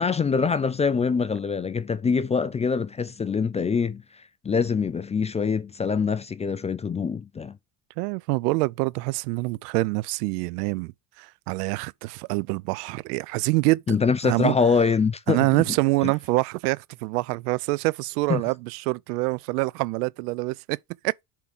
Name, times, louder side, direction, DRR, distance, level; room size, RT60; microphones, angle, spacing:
voice 1, 0.0-4.0 4.4-7.5 13.9-15.5 16.0-16.1 18.3-18.4, left 5 dB, 15° left, 0.3 m, -24 dB
voice 2, 8.0-10.9 11.2-14.0 14.2-14.5 15.3-20.8 21.0-21.2, right 23 dB, 90° right, 0.6 m, -26 dB
7.3 x 3.8 x 5.4 m
supercardioid pair, 105°, 45 cm